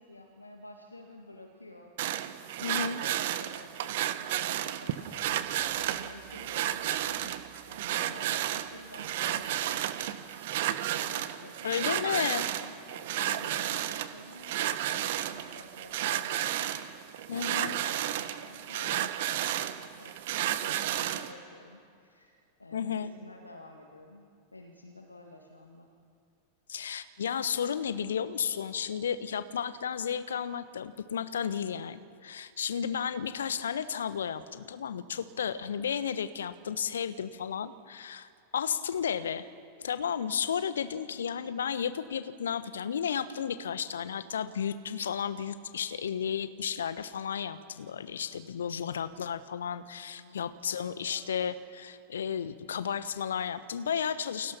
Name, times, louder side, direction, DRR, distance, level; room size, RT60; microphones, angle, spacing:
voice 1, 0.0-2.2 2.7-25.9 40.8-41.2 50.2-50.4 50.7-51.2, left 2 dB, 80° left, 2 dB, 2.1 m, -51 dB
sound 1, 2.0-21.3, right 12 dB, 55° right, 1.3 m, -32 dB
voice 2, 2.6-3.0 11.6-12.5 17.3-17.8 22.7-23.1 26.7-39.5 39.8-54.6, left 7 dB, 65° left, 14 dB, 1.1 m, -33 dB
29.0 x 22.0 x 5.9 m, 2.3 s
figure-of-eight pair, 90°, 0 cm